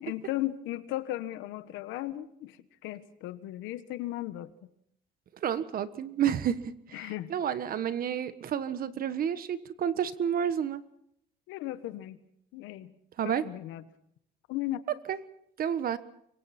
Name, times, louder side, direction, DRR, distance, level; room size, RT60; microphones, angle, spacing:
voice 1, 0.0-4.7 6.9-7.3 11.5-12.2 12.5-12.9 13.2-13.8 14.5-14.8, left 15 dB, 90° left, 12 dB, 1.4 m, -36 dB
voice 2, 5.4-6.7 7.3-10.8 13.2-13.4 15.1-15.2 15.6-16.0, right 9 dB, 50° right, 13 dB, 1.4 m, -30 dB
26.0 x 23.0 x 4.4 m, 0.72 s
cardioid pair, 125°, 19 cm